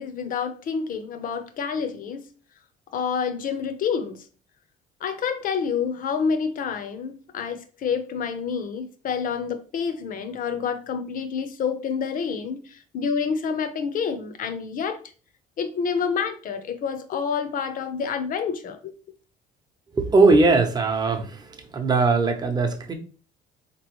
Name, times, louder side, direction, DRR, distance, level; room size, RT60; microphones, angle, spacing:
voice 1, 0.0-2.2 2.9-4.2 5.0-15.0 15.6-18.9, left 6 dB, 55° left, 0.7 m, -28 dB
voice 2, 19.9-22.9, right 3 dB, 25° right, 0.8 m, -20 dB
3.7 x 3.0 x 3.1 m
cardioid pair, 110°, 17 cm